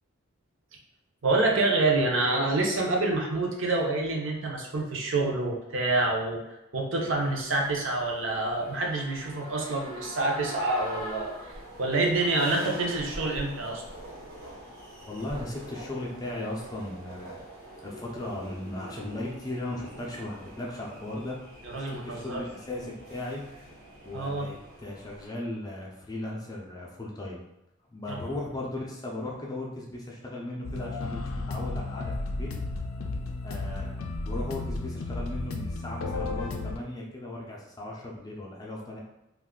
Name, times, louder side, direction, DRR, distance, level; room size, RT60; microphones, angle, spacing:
voice 1, 1.2-6.4 6.7-11.3 11.8-13.8 21.6-22.4 24.1-24.5 28.1-28.2, right 2 dB, 65° right, -1 dB, 0.6 m, -27 dB
sound 1, 7.0-25.2, equal, 80° right, 1.0 m, -43 dB
voice 2, 15.1-17.4 17.8-21.4 21.9-23.4 24.0-27.4 27.9-32.5 33.4-33.9 34.2-39.0, left 1 dB, 15° left, -3 dB, 0.5 m, -37 dB
sound 2, 30.6-36.8, left 3 dB, 80° left, 0.4 m, -33 dB
2.5 x 2.3 x 3.6 m, 0.90 s
head